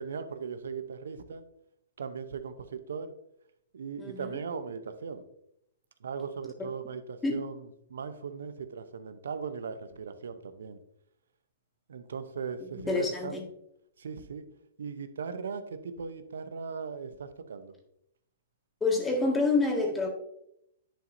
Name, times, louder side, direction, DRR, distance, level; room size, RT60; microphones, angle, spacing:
voice 1, 0.0-1.4 2.0-3.1 3.7-5.2 6.0-7.5 7.9-10.8 11.9-13.4 14.0-14.5 14.8-17.7, right 6 dB, 80° right, 11 dB, 0.7 m, -38 dB
voice 2, 4.0-4.4 6.6-6.7 7.2-7.4 12.9-13.4 18.8-20.1, left 3 dB, 10° left, 1 dB, 1.8 m, -27 dB
10.0 x 5.2 x 2.7 m, 0.77 s
hypercardioid pair, 125°, 0 cm